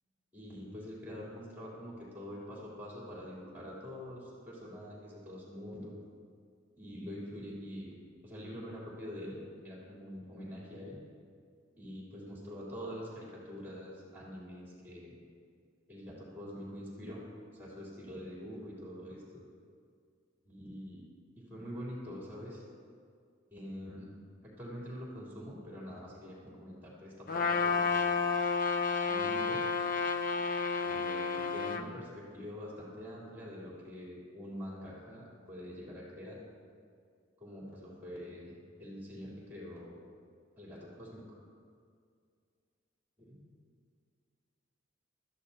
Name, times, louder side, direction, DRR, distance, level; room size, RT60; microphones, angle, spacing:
voice 1, 0.3-5.9 6.8-7.9 8.2-11.0 11.8-15.2 15.9-17.2 17.5-19.4 20.4-21.0 21.5-22.6 23.5-24.1 24.4-28.2 29.1-29.6 30.8-36.4 37.4-40.0 40.6-41.4 43.2-43.5, equal, 10° right, -6 dB, 3.7 m, -45 dB
Trumpet, 27.3-31.8, left 5 dB, 45° left, 0.8 m, -31 dB
20.0 x 14.0 x 2.9 m, 2.2 s
head